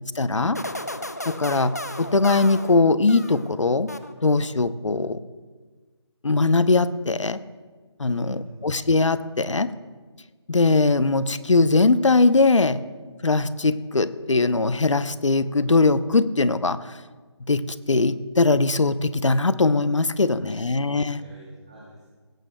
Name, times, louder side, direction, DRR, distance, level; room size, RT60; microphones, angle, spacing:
voice 1, 0.2-0.6 1.3-3.9 4.2-5.2 6.2-7.4 8.0-9.7 10.5-12.8 13.2-16.8 17.5-21.2, left 3 dB, 85° left, 14 dB, 0.8 m, -21 dB
sound 1, 0.5-3.5 3.9-4.5, left 1 dB, 35° left, 0.4 m, -35 dB
voice 2, 8.1-8.6 20.3-20.6 21.0-22.1, equal, 15° right, -7 dB, 1.2 m, -46 dB
17.0 x 15.5 x 2.3 m, 1.4 s
figure-of-eight pair, 180°, 15 cm